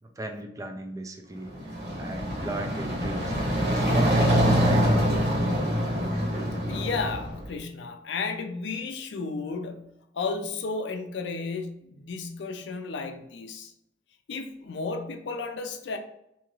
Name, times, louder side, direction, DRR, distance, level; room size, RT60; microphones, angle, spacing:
voice 1, 0.0-3.3 3.7-5.0, right 1 dB, 20° right, 0.4 m, -36 dB
sound 1, 1.4-7.5, equal, 60° right, 1.1 m, -25 dB
voice 2, 6.7-13.7 14.3-16.0, left 4 dB, 80° left, 0.4 m, -33 dB
2.7 x 2.4 x 3.0 m
head